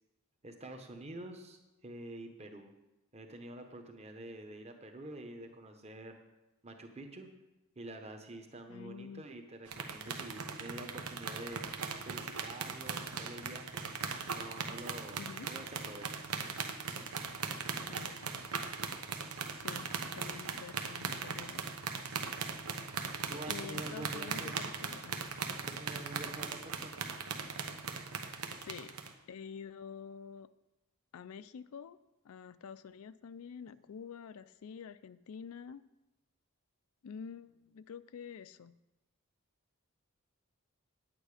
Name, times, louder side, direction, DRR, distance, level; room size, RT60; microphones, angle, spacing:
voice 1, 0.4-2.7 3.1-6.2 6.6-7.3 7.8-11.6 12.0-13.8 14.3-16.3 23.3-24.6 25.6-26.9, right 1 dB, 30° right, 5 dB, 1.1 m, -47 dB
voice 2, 8.7-9.2 15.2-15.5 17.9-18.4 19.5-21.6 23.5-25.2 28.5-28.9 29.3-30.5 31.1-32.0 32.2-35.8 37.0-38.8, left 6 dB, 75° left, 14 dB, 0.4 m, -48 dB
sound 1, 9.7-29.1, right 5 dB, 85° right, 1.0 m, -39 dB
9.7 x 8.9 x 4.9 m, 0.97 s
head